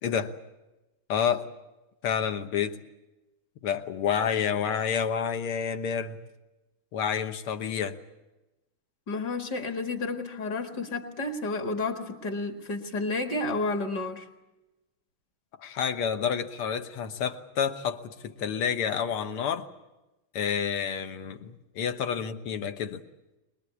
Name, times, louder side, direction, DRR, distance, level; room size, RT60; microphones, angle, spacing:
voice 1, 0.0-0.3 1.1-1.5 2.0-2.8 3.6-6.2 6.9-8.0 15.6-19.7 20.3-23.0, left 7 dB, 90° left, 2.1 m, -29 dB
voice 2, 9.1-14.3, left 3 dB, 50° left, 2.3 m, -31 dB
23.5 x 21.0 x 8.4 m
omnidirectional pair, 2.4 m